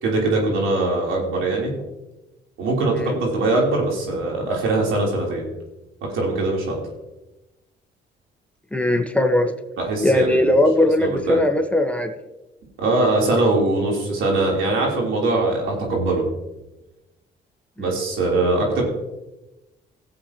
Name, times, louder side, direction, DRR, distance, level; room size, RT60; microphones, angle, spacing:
voice 1, 0.0-1.8 2.6-5.5 6.1-6.8 9.8-10.5 11.0-11.4 12.8-16.2 17.8-18.8, right 2 dB, 85° right, -2 dB, 3.4 m, -22 dB
voice 2, 8.7-9.5 10.0-12.1 17.8-18.0, left 1 dB, 5° left, 4 dB, 1.1 m, -19 dB
17.0 x 7.7 x 2.9 m, 1.0 s
cardioid pair, 90°, 20 cm